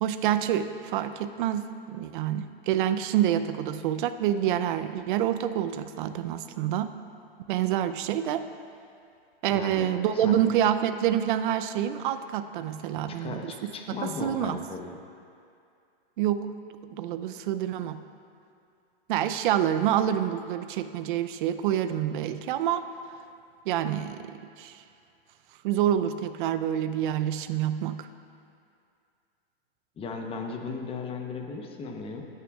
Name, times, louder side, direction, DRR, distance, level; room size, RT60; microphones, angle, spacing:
voice 1, 0.0-6.9 7.5-8.4 9.4-14.6 16.2-16.5 16.9-18.0 19.1-22.8 23.7-24.8 25.6-28.1, right 10 dB, 55° right, 10 dB, 0.6 m, -27 dB
voice 2, 9.5-9.9 10.1-10.4 13.1-15.0 30.0-32.3, left 4 dB, 20° left, 3 dB, 0.9 m, -36 dB
17.0 x 9.4 x 2.4 m, 2.4 s
hypercardioid pair, 130°, 31 cm